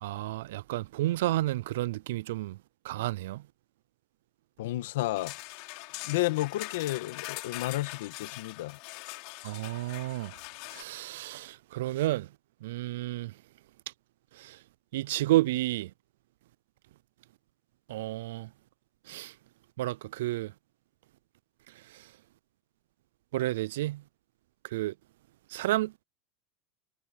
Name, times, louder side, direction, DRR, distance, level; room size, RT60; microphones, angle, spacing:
voice 1, 0.0-2.6 2.9-3.4 9.4-10.3 10.7-12.3 12.6-13.3 14.9-15.9 17.9-18.5 19.1-19.3 19.8-20.5 23.3-24.0 24.7-24.9 25.5-26.0, right 16 dB, 75° right, 0.3 m, -30 dB
voice 2, 4.6-5.3 6.0-8.8, left 16 dB, 75° left, 1.9 m, -31 dB
sound 1, 5.1-10.8, left 24 dB, 45° left, 3.7 m, -42 dB
supercardioid pair, 180°, 0 cm